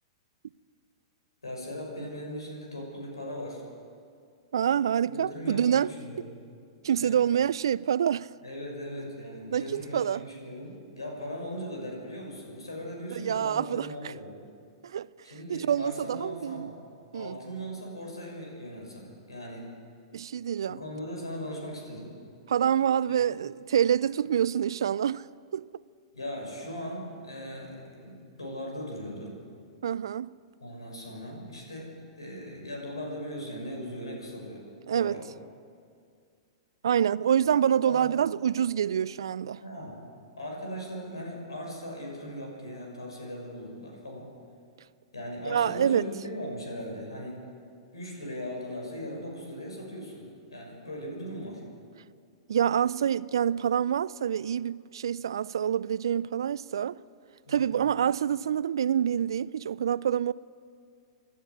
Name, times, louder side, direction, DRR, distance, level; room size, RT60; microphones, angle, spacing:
voice 1, 1.4-3.6 5.1-6.3 6.9-7.1 8.4-14.4 15.2-16.7 17.1-19.7 20.7-22.1 26.1-29.4 30.6-34.6 34.9-35.2 37.8-38.1 39.6-40.0 40.4-44.3 45.1-47.4 47.9-51.6 57.4-57.7, equal, 80° left, 6.5 m, -39 dB
voice 2, 4.5-5.9 6.8-8.3 9.5-10.2 13.2-14.1 14.8-15.1 15.5-16.7 17.1-17.4 20.1-20.8 22.5-25.2 25.5-25.7 29.8-30.3 34.9-35.2 36.8-39.6 45.5-46.1 52.5-57.0 57.5-60.3, right 9 dB, 70° right, 0.4 m, -26 dB
28.5 x 12.0 x 8.2 m
figure-of-eight pair, 105°, 3 cm